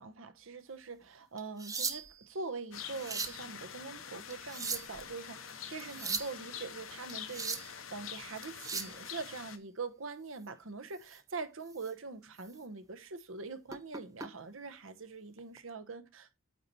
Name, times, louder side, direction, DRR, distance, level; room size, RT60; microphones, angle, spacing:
voice 1, 0.0-16.3, right 4 dB, 80° right, 0.9 m, -43 dB
sound 1, 1.4-2.3 2.8-3.4 4.3-5.0 5.8-6.3 7.1-7.7 8.4-9.0 11.0-11.2 11.7-11.9 12.4-12.5 13.7-14.3 15.4-15.6, right 5 dB, 15° right, 0.6 m, -38 dB
sound 2, 2.7-9.6, left 8 dB, 90° left, 1.0 m, -46 dB
8.6 x 4.4 x 4.0 m
head